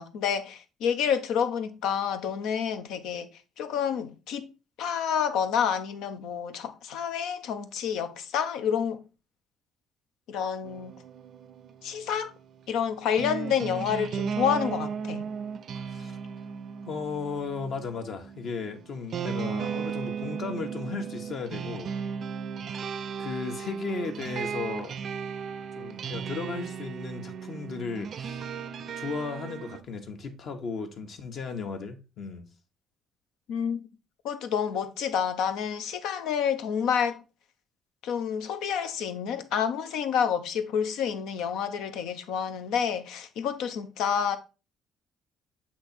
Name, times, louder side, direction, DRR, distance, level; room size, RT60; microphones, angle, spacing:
voice 1, 0.0-3.3 3.6-4.5 4.8-9.0 10.3-10.9 11.8-12.3 12.7-15.2 33.5-33.9 34.2-37.2 38.0-44.4, left 7 dB, 80° left, 0.8 m, -29 dB
sound 1, 10.6-29.8, right 6 dB, 55° right, 0.5 m, -36 dB
voice 2, 15.7-16.2 16.9-21.9 23.2-24.9 25.8-28.6 29.0-32.5, left 5 dB, 55° left, 1.2 m, -35 dB
7.7 x 3.0 x 4.3 m
cardioid pair, 105°, 0 cm